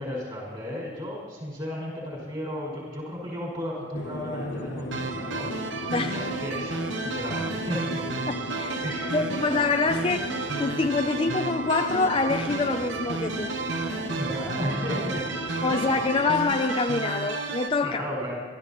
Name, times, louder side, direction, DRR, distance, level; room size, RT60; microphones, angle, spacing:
voice 1, 0.0-5.5 6.0-8.0 8.8-9.2 13.8-15.2 15.7-15.8 17.8-18.4, left 1 dB, 25° right, 5.8 m, -34 dB
sound 1, 3.9-16.4, left 2 dB, 60° left, 0.9 m, -37 dB
sound 2, 4.9-17.7, right 4 dB, 65° right, 1.0 m, -32 dB
voice 2, 8.3-8.8 9.1-10.3 10.6-13.5 15.6-18.0, left 3 dB, 25° left, 0.4 m, -26 dB
26.5 x 14.0 x 3.0 m
head